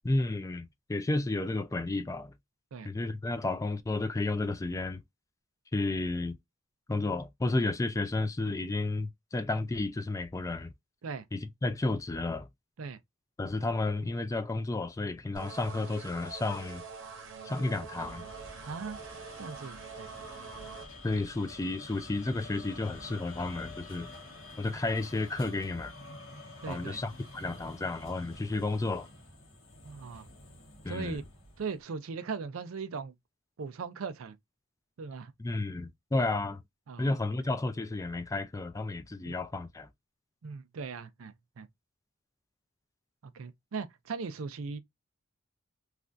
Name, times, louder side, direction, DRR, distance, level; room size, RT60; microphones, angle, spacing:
voice 1, 0.0-2.3 2.8-5.0 5.7-6.4 6.9-10.7 11.3-12.5 13.4-16.8 17.4-18.2 21.0-24.1 24.6-25.9 26.7-29.1 30.8-31.2 35.4-36.6 37.0-39.9, left 2 dB, 15° left, 0.3 m, -32 dB
sound 1, 15.3-20.9, right 5 dB, 65° right, 0.9 m, -45 dB
sound 2, 18.0-31.8, left 2 dB, 75° left, 1.2 m, -49 dB
voice 2, 18.7-19.0 19.4-20.1 26.6-27.0 29.8-30.3 30.9-31.2 31.6-33.1 33.6-34.4 35.0-35.3 36.9-37.2 39.2-39.4 40.4-41.7 43.2-44.8, right 5 dB, 85° right, 0.5 m, -39 dB
3.3 x 2.4 x 2.5 m
head